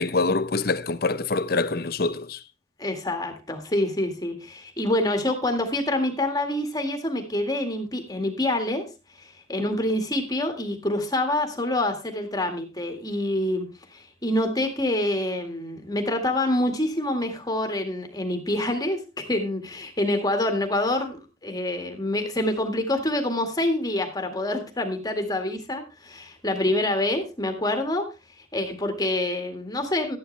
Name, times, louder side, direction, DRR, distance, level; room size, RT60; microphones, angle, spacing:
voice 1, 0.0-2.4, left 3 dB, 55° left, 0.8 m, -25 dB
voice 2, 2.8-8.8 9.2-13.7 13.9-28.1 28.4-30.2, left 1 dB, 20° left, 1.9 m, -26 dB
13.0 x 10.5 x 3.3 m
head